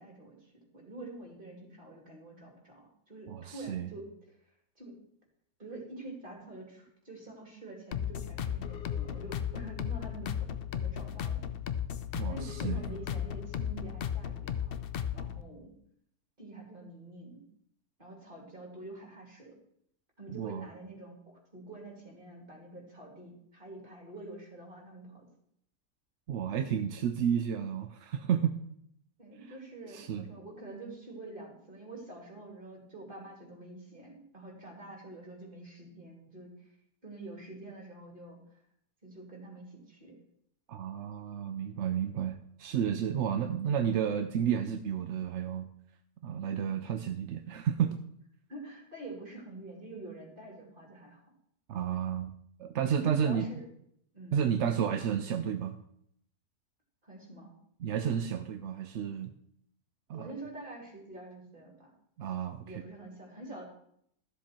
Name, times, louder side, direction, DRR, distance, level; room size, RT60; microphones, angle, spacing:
voice 1, 0.0-4.4 4.8-5.0 5.6-11.4 12.3-14.7 15.1-15.7 16.4-17.4 18.0-19.6 20.2-25.3 29.2-36.7 37.0-38.6 39.0-40.2 48.5-51.3 52.9-53.6 54.1-54.5 57.0-57.5 60.1-61.9 62.6-63.6, right 2 dB, 30° right, 0 dB, 3.1 m, -47 dB
voice 2, 3.3-3.9 12.1-12.8 20.3-20.7 26.3-28.6 29.9-30.3 40.7-45.7 46.2-48.0 51.7-52.3 52.6-53.5 54.3-55.8 57.8-59.3 60.1-60.3 62.2-62.8, right 8 dB, 60° right, 8 dB, 0.8 m, -31 dB
sound 1, 7.9-15.4, left 9 dB, 60° left, 0.6 m, -35 dB
13.0 x 7.4 x 4.4 m, 0.71 s
omnidirectional pair, 1.7 m